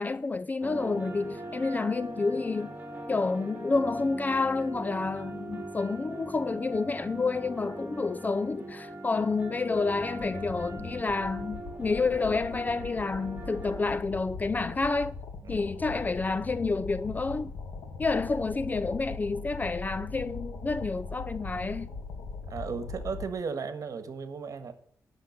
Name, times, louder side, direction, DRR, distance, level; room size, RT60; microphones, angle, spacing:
voice 1, 0.0-2.8 3.1-15.2 15.5-17.5 18.0-21.9, left 3 dB, 25° left, 0.3 m, -29 dB
sound 1, 0.6-13.8, right 1 dB, 25° right, 3.7 m, -41 dB
sound 2, 9.6-23.3, left 4 dB, 85° left, 2.0 m, -40 dB
voice 2, 22.5-24.7, right 5 dB, 60° right, 1.5 m, -35 dB
10.0 x 6.7 x 6.5 m
cardioid pair, 95°, 6 cm